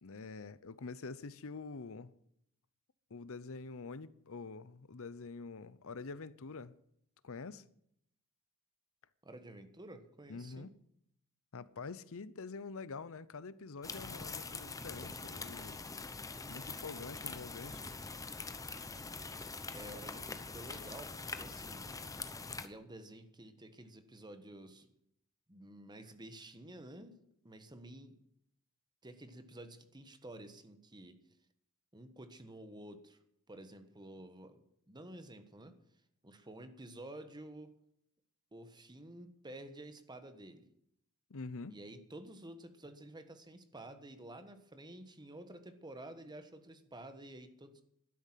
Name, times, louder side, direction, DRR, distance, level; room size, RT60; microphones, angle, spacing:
voice 1, 0.0-2.1 3.1-6.8 7.2-7.6 10.3-10.7 11.5-15.9 16.5-17.8 41.3-41.7, left 4 dB, 65° left, 0.8 m, -46 dB
voice 2, 9.2-10.7 19.7-21.9 22.6-24.9 25.5-27.1 27.4-28.2 29.0-31.2 31.9-33.2 33.5-35.7 36.2-37.7 38.5-40.7 41.7-47.8, right 1 dB, 20° right, 1.4 m, -51 dB
sound 1, 13.8-22.7, left 4 dB, 15° left, 0.8 m, -44 dB
12.5 x 10.5 x 7.5 m
head